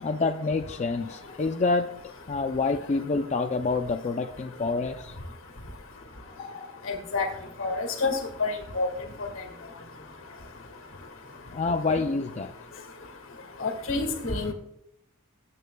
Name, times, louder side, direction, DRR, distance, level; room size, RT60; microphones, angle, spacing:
voice 1, 0.0-2.0 2.3-5.2 11.5-12.5, left 3 dB, 35° left, 5 dB, 0.5 m, -27 dB
voice 2, 6.9-7.3 7.6-8.9 13.6-14.5, left 3 dB, 70° left, 5 dB, 1.9 m, -28 dB
20.0 x 8.6 x 2.3 m, 0.79 s
head